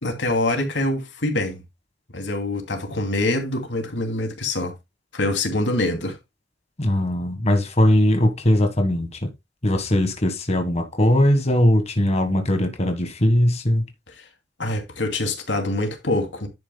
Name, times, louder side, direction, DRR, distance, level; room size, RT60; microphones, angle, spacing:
voice 1, 0.0-1.6 2.1-4.7 5.1-6.2 14.6-16.5, left 2 dB, 90° left, 2.6 m, -25 dB
voice 2, 6.8-9.3 9.6-13.9, left 1 dB, 35° left, 1.4 m, -20 dB
11.0 x 8.8 x 2.2 m
head